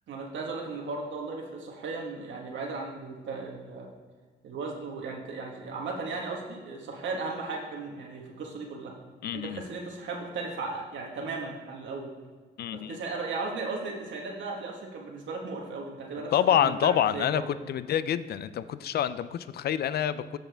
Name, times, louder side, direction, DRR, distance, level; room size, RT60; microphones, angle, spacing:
voice 1, 0.1-3.9 4.4-8.9 9.3-12.1 12.7-16.3 16.6-17.5, right 3 dB, 70° right, -1 dB, 1.4 m, -36 dB
voice 2, 9.2-9.6 12.6-13.0 16.3-20.4, left 10 dB, 55° left, 15 dB, 0.4 m, -27 dB
13.0 x 4.4 x 3.4 m, 1.4 s
cardioid pair, 90°, 20 cm